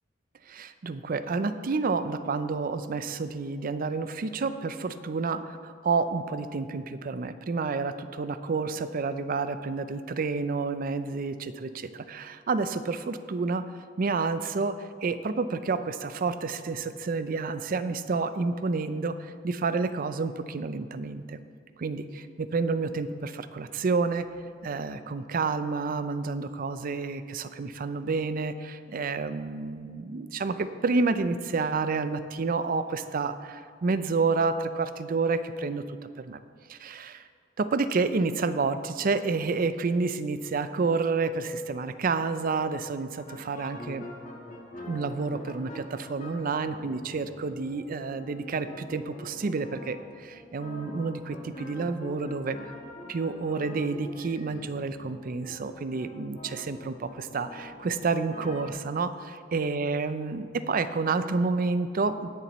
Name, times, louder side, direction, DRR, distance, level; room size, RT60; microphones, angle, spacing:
voice 1, 0.5-13.6 14.0-21.4 21.8-24.3 24.6-36.0 36.2-36.4 36.7-37.3 37.6-44.1 44.9-52.7 53.1-62.3, right 4 dB, 50° right, 11 dB, 0.5 m, -29 dB
sound 1, 43.2-58.7, left 1 dB, 45° left, 1.4 m, -45 dB
17.5 x 7.0 x 3.1 m, 2.2 s
head